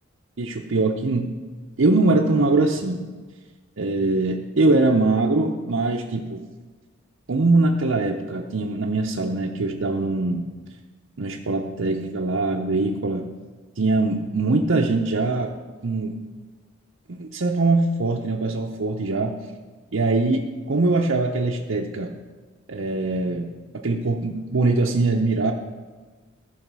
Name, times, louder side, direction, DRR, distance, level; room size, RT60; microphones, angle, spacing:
voice 1, 0.4-1.3 1.8-3.0 3.8-6.4 7.3-10.4 11.2-13.3 13.8-15.5 15.8-16.1 17.1-19.4 19.9-22.1 22.7-23.5 23.8-25.5, right 2 dB, 65° right, -1 dB, 0.7 m, -22 dB
14.5 x 4.9 x 6.1 m, 1.4 s
head